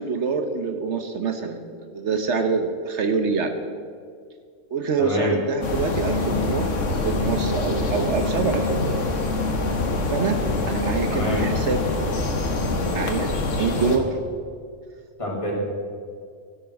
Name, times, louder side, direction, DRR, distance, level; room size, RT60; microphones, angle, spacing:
voice 1, 0.0-3.5 4.7-6.7 7.0-9.0 10.1-10.4 10.7-11.8 12.9-14.1, right 5 dB, 70° right, 7 dB, 1.2 m, -25 dB
voice 2, 5.0-5.4 11.1-11.5 15.2-15.5, equal, 25° left, -3 dB, 2.9 m, -26 dB
sound 1, 5.6-14.0, left 2 dB, 85° left, 1.7 m, -25 dB
12.5 x 10.5 x 5.9 m, 2.1 s
omnidirectional pair, 1.3 m